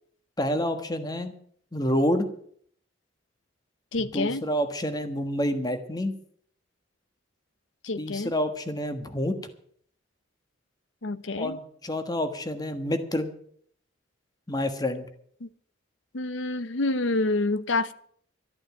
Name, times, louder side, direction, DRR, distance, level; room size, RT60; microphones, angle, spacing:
voice 1, 0.4-1.3 1.7-2.3 4.0-6.1 8.0-9.4 11.4-13.3 14.5-15.1, left 1 dB, 20° left, 1.4 m, -28 dB
voice 2, 3.9-4.4 7.8-8.3 11.0-11.6 15.4-15.5 16.1-17.9, left 2 dB, 75° left, 0.9 m, -27 dB
13.5 x 9.0 x 8.5 m
head